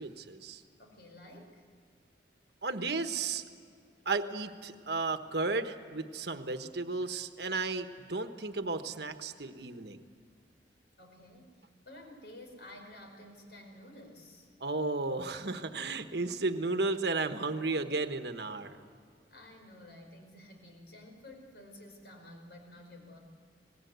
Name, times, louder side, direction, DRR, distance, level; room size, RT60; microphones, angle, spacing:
voice 1, 0.0-0.6 2.6-3.4 4.0-10.0 14.6-18.8, right 3 dB, 70° right, 8 dB, 1.2 m, -34 dB
voice 2, 0.8-1.6 11.0-14.5 19.3-23.2, left 1 dB, 70° left, 3 dB, 5.2 m, -52 dB
26.5 x 20.0 x 8.1 m, 2.3 s
head